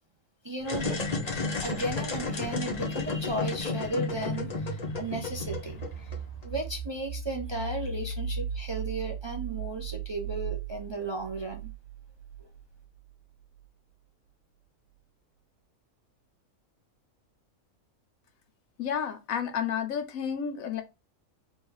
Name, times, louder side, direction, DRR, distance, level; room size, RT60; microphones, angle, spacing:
voice 1, 0.4-0.9 1.6-6.1 6.4-11.7, right 2 dB, 35° right, 0.4 m, -35 dB
sound 1, 0.6-6.5, left 3 dB, 35° left, 0.9 m, -32 dB
sound 2, 4.1-12.8, right 5 dB, 85° right, 1.1 m, -37 dB
voice 2, 18.8-20.8, left 8 dB, 90° left, 1.2 m, -31 dB
3.4 x 3.3 x 4.5 m
omnidirectional pair, 1.4 m